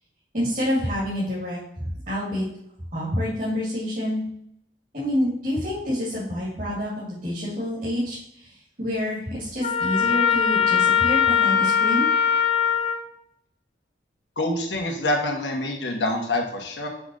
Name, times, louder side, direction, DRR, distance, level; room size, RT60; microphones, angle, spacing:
voice 1, 0.3-2.4 2.9-4.2 4.9-12.1, left 1 dB, 45° right, -9 dB, 2.4 m, -27 dB
Trumpet, 9.6-13.0, left 7 dB, 45° left, 1.3 m, -20 dB
voice 2, 14.4-16.9, left 1 dB, 80° left, 0 dB, 1.3 m, -26 dB
6.1 x 4.0 x 6.2 m, 0.73 s
head